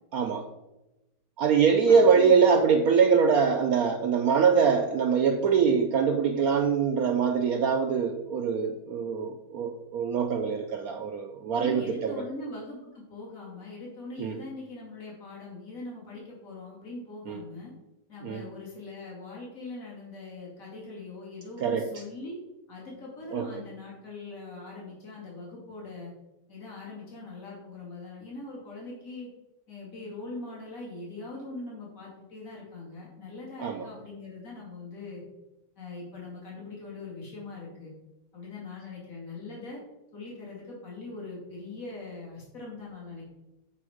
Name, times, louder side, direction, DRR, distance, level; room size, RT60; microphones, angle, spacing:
voice 1, 0.1-0.5 1.4-12.2 14.2-14.4 17.3-17.4 18.2-18.4 21.6-21.9 23.3-23.5 33.6-33.9, right 6 dB, 70° right, 5 dB, 0.9 m, -23 dB
voice 2, 1.9-2.3 11.5-17.7 18.1-22.4 22.7-26.1 26.5-29.3 29.7-35.2 35.8-37.9 38.3-39.8 40.1-43.2, left 3 dB, 50° left, -5 dB, 2.8 m, -41 dB
7.7 x 5.1 x 4.9 m, 0.99 s
omnidirectional pair, 1.9 m